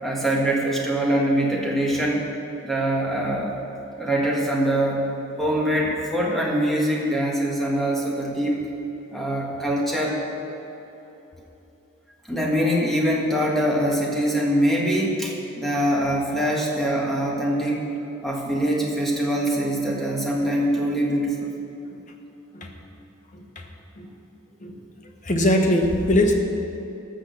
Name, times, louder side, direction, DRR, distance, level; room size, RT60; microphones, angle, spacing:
voice 1, 0.0-2.3 2.6-3.5 4.0-5.1 5.4-8.6 9.1-10.2 12.3-17.9 18.2-21.5, right 1 dB, ahead, -3 dB, 1.5 m, -23 dB
voice 2, 25.2-26.3, left 1 dB, 35° left, 3 dB, 1.2 m, -20 dB
14.0 x 6.2 x 7.0 m, 3.0 s
head